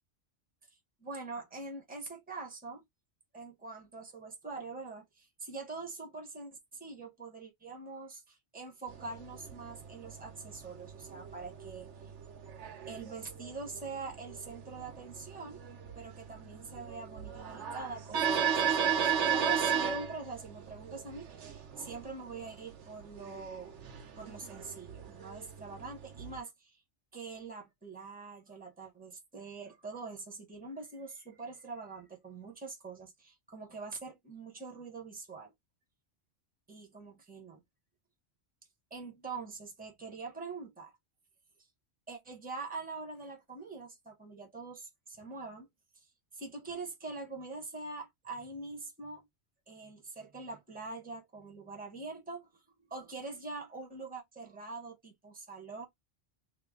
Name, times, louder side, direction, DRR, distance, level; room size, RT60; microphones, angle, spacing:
voice 1, 1.0-2.8 3.3-11.9 12.9-15.6 15.9-23.7 24.2-26.8 27.1-35.5 36.7-37.6 38.9-40.9 42.1-45.7 45.9-46.1 46.3-49.3 49.7-52.5 52.9-55.8, right 3 dB, 10° right, 1.0 m, -44 dB
sound 1, 8.9-26.4, right 7 dB, 90° right, 1.0 m, -36 dB
3.0 x 2.9 x 3.6 m
omnidirectional pair, 1.2 m